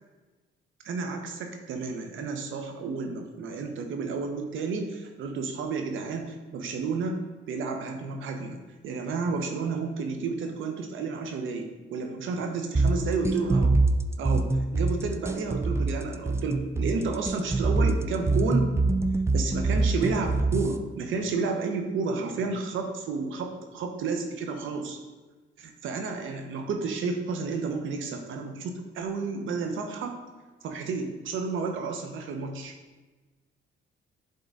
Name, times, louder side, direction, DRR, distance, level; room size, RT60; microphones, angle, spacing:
voice 1, 0.8-7.2 7.5-13.8 14.2-18.7 19.3-25.0 25.6-30.2 30.6-32.7, right 4 dB, 80° right, 5 dB, 1.1 m, -31 dB
sound 1, 12.7-20.8, right 2 dB, 15° right, 0.5 m, -24 dB
10.5 x 3.9 x 4.0 m, 1.3 s
cardioid pair, 90°, 20 cm